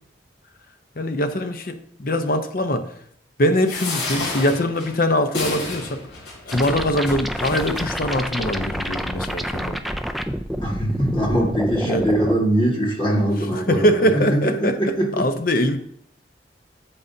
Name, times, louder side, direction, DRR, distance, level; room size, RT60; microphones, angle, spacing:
voice 1, 1.0-2.9 3.4-6.0 6.5-9.8 11.8-12.1 13.5-15.8, equal, 50° left, 7 dB, 0.8 m, -22 dB
sound 1, 3.6-8.2 8.8-8.9 9.2-9.3, left 2 dB, 80° left, 3.1 m, -31 dB
sound 2, 6.5-12.4, equal, ahead, 0.3 m, -28 dB
voice 2, 10.6-15.3, right 1 dB, 25° left, -2 dB, 1.8 m, -22 dB
8.8 x 7.5 x 2.8 m, 0.66 s
head